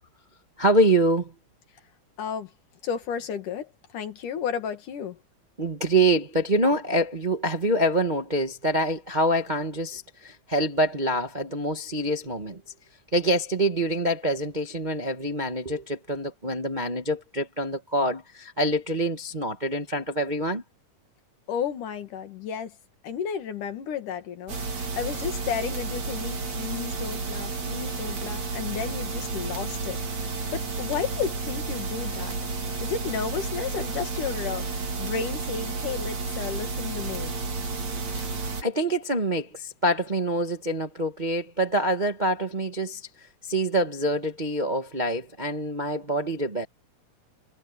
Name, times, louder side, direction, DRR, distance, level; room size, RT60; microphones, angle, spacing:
voice 1, 0.6-1.3 5.6-12.6 13.1-20.6 38.1-43.1 43.4-46.7, right 1 dB, 25° right, 0.9 m, -25 dB
voice 2, 2.2-2.5 2.8-5.2 21.5-22.7 23.0-32.4 32.8-37.3, left 7 dB, 80° left, 3.5 m, -33 dB
sound 1, 24.5-38.6, right 3 dB, 55° right, 4.8 m, -31 dB
omnidirectional pair, 3.6 m